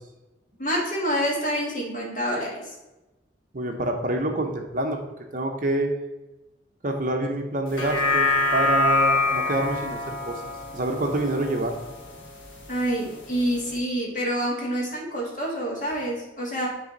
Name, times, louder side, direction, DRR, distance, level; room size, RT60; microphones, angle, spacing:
voice 1, 0.6-2.7 12.7-16.7, equal, 40° left, -3 dB, 1.8 m, -27 dB
voice 2, 3.5-5.0 5.3-5.9 6.8-10.4 10.7-11.8, right 1 dB, 45° right, 3 dB, 0.7 m, -27 dB
sound 1, 7.7-12.2 12.6-12.7, left 3 dB, 90° left, 1.4 m, -25 dB
10.0 x 3.4 x 4.0 m, 1.0 s
head